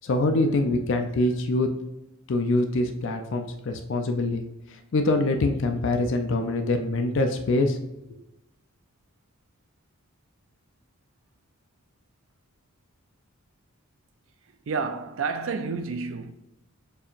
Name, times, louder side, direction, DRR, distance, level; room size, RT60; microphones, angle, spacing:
voice 1, 0.0-1.7 2.3-4.4 4.9-7.8, left 2 dB, 55° left, 0.4 m, -24 dB
voice 2, 14.7-16.3, right 4 dB, 65° right, 0.4 m, -30 dB
6.7 x 2.9 x 2.4 m
head